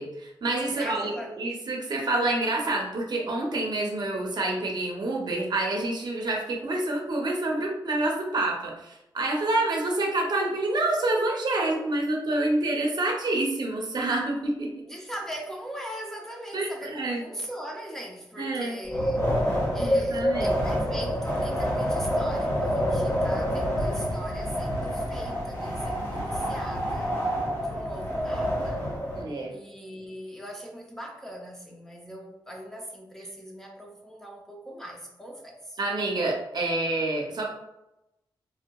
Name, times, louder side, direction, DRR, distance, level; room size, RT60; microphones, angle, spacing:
voice 1, 0.0-14.7 16.5-17.3 18.4-18.8 19.8-20.6 29.1-29.5 35.8-37.4, right 2 dB, 55° right, 0 dB, 0.7 m, -27 dB
voice 2, 0.7-1.4 14.9-19.4 19.7-27.1 27.6-28.9 29.5-35.8, equal, 5° left, -1 dB, 0.5 m, -40 dB
Wind, 18.8-29.2, equal, 35° left, 1.4 m, -27 dB
3.3 x 2.7 x 2.3 m, 0.90 s
wide cardioid pair, 105°, 8 cm